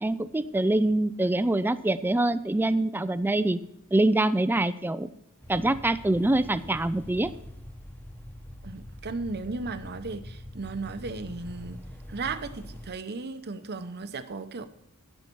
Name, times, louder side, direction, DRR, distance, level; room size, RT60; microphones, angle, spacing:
voice 1, 0.0-3.6 3.9-5.1 5.5-7.3, right 2 dB, 10° right, 14 dB, 0.4 m, -25 dB
sound 1, 5.4-12.9, equal, 10° left, 1.1 m, -44 dB
voice 2, 8.6-11.8 12.1-14.7, right 3 dB, 50° right, 11 dB, 0.8 m, -35 dB
16.0 x 5.6 x 4.6 m, 0.80 s
head